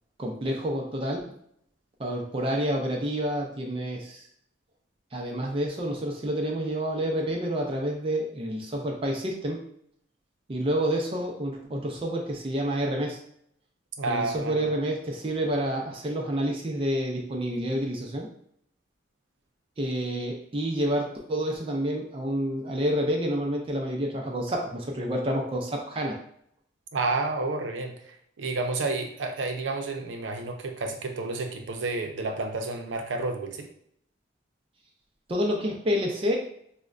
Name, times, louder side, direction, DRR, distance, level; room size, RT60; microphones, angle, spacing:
voice 1, 0.2-1.4 2.0-4.3 5.1-9.6 10.5-13.2 14.1-18.3 19.8-26.2 35.3-36.4, equal, 30° right, 0 dB, 0.4 m, -29 dB
voice 2, 14.0-14.7 26.9-33.7, right 3 dB, 90° right, 4 dB, 0.5 m, -30 dB
4.9 x 2.1 x 2.4 m, 0.68 s
head